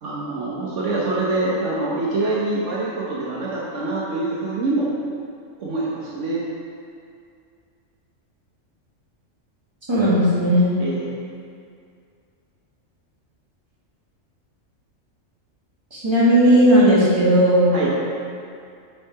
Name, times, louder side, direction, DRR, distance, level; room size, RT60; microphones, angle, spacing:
voice 1, 0.0-4.9 5.6-6.4 10.8-11.1 17.7-17.9, right 2 dB, 65° right, -5 dB, 1.2 m, -25 dB
voice 2, 9.9-10.7 15.9-17.8, equal, 20° right, -8 dB, 1.8 m, -16 dB
7.2 x 4.7 x 4.6 m, 2.3 s
omnidirectional pair, 1.4 m